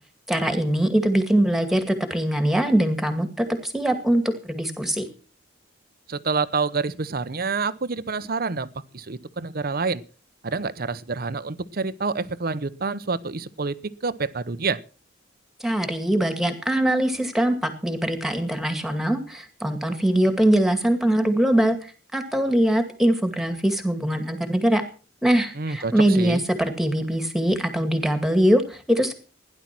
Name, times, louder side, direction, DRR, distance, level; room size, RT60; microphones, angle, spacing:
voice 1, 0.3-5.1 15.6-21.8 22.1-24.8 25.2-29.1, right 1 dB, ahead, 2.2 m, -22 dB
voice 2, 6.1-10.0 10.4-14.8 25.6-26.4, right 4 dB, 50° right, 0.8 m, -28 dB
16.0 x 11.0 x 6.0 m
head